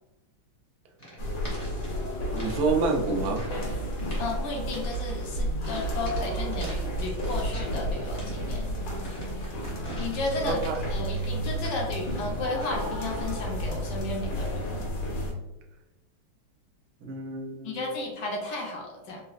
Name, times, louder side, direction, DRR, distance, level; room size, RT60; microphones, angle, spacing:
sound 1, 1.0-2.6 2.9-3.6 3.9-4.3 4.7-5.2 5.6-7.8 8.1-12.1 12.4-12.9, equal, 35° left, 0.5 m, -45 dB
sound 2, 1.2-15.3, equal, 85° left, 1.8 m, -32 dB
voice 1, 2.3-3.4 10.4-10.8 17.0-17.9, right 3 dB, 70° right, 1 dB, 0.9 m, -28 dB
voice 2, 4.1-8.6 10.0-10.6 10.9-14.8 17.6-19.2, left 2 dB, 65° left, -1 dB, 1.2 m, -33 dB
4.1 x 2.3 x 2.4 m, 1.1 s
omnidirectional pair, 2.3 m